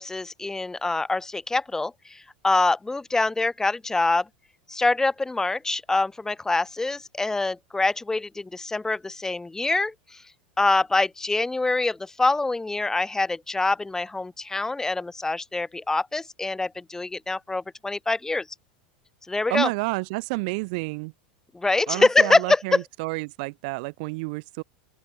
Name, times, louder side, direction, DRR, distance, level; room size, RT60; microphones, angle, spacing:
voice 1, 0.0-4.3 4.7-10.2 10.6-18.5 19.3-19.7 21.5-22.8, left 3 dB, 10° left, 2.3 m, -25 dB
voice 2, 19.5-21.1 21.9-24.6, right 28 dB, 60° right, 1.4 m, -30 dB
open air
hypercardioid pair, 95°, 5 cm